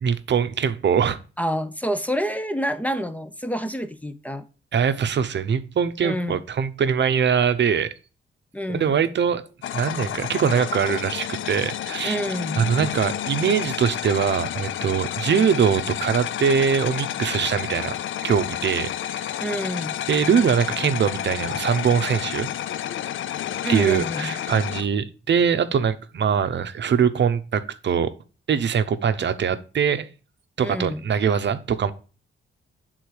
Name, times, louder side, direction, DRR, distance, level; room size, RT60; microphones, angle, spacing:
voice 1, 0.0-1.2 4.7-7.9 8.7-9.4 9.7-12.2 12.6-18.0 18.2-19.2 20.1-22.5 23.7-28.1 28.5-30.1 30.6-31.9, right 7 dB, 55° right, 0.7 m, -22 dB
voice 2, 1.4-4.4 6.0-6.4 8.5-8.9 12.0-12.6 19.4-20.0 23.6-24.4 30.6-31.0, equal, 5° left, 0.7 m, -28 dB
sound 1, 9.6-24.8, left 11 dB, 70° left, 0.4 m, -30 dB
7.9 x 3.8 x 4.7 m
cardioid pair, 75°, 21 cm